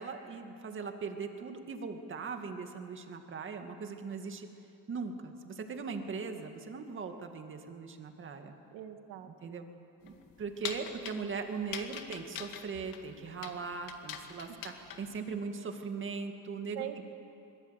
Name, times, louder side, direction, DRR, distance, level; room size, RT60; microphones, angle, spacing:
voice 1, 0.0-4.5 4.9-8.5 9.3-9.6 10.0-16.9, right 5 dB, 30° right, 5 dB, 2.2 m, -39 dB
voice 2, 8.7-9.6 14.5-14.6 16.7-17.0, right 12 dB, 80° right, 6 dB, 2.1 m, -43 dB
sound 1, 10.0-15.2, left 9 dB, 65° left, 2.2 m, -44 dB
25.0 x 21.5 x 8.3 m, 2.7 s
cardioid pair, 140°, 37 cm